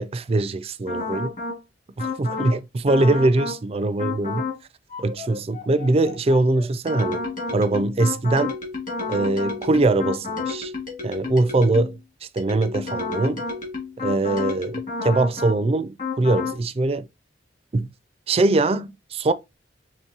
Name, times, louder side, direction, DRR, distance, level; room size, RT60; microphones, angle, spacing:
voice 1, 0.0-1.3 2.0-4.4 5.0-7.2 7.5-8.6 9.1-10.7 11.0-13.4 14.0-17.1 17.7-17.9 18.3-19.3, right 2 dB, 30° right, 0.4 m, -22 dB
sound 1, 0.9-1.6 2.0-2.6 2.9-3.6 4.0-4.6 4.9-12.0 12.4-15.6 16.0-16.6, left 3 dB, 45° left, 2.2 m, -31 dB
5.8 x 3.0 x 2.8 m
head